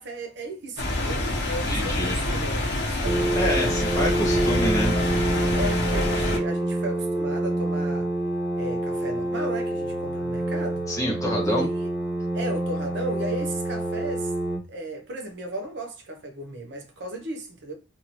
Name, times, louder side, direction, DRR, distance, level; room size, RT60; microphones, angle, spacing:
voice 1, 0.0-3.3 5.5-8.1 8.6-10.8 11.4-11.9 12.3-14.3 14.7-17.7, right 1 dB, 60° right, 0.7 m, -35 dB
sound 1, 0.8-6.4, left 1 dB, 60° left, 0.9 m, -26 dB
voice 2, 1.7-2.2 3.3-4.9 10.9-11.7, equal, 15° left, 1.2 m, -27 dB
sound 2, 3.0-14.6, right 1 dB, 15° right, 1.0 m, -27 dB
2.8 x 2.6 x 2.9 m
head